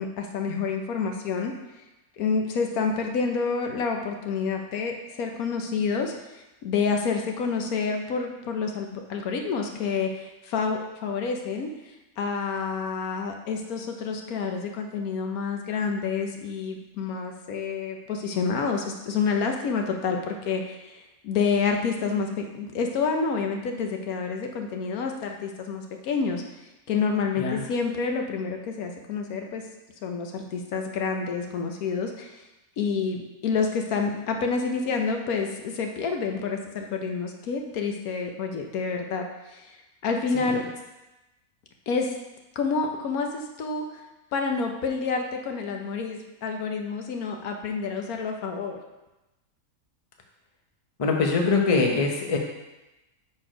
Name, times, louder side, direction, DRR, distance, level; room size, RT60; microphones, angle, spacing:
voice 1, 0.0-1.5 2.2-6.1 6.6-11.7 12.2-26.4 26.9-29.6 30.0-32.4 32.8-39.2 39.5-39.8 40.0-40.6 41.9-42.1 42.6-44.0 44.3-48.8, left 5 dB, 80° left, 3 dB, 1.3 m, -28 dB
voice 2, 51.0-52.4, left 4 dB, 30° left, 1 dB, 0.7 m, -23 dB
6.3 x 4.4 x 5.0 m, 1.0 s
omnidirectional pair, 1.5 m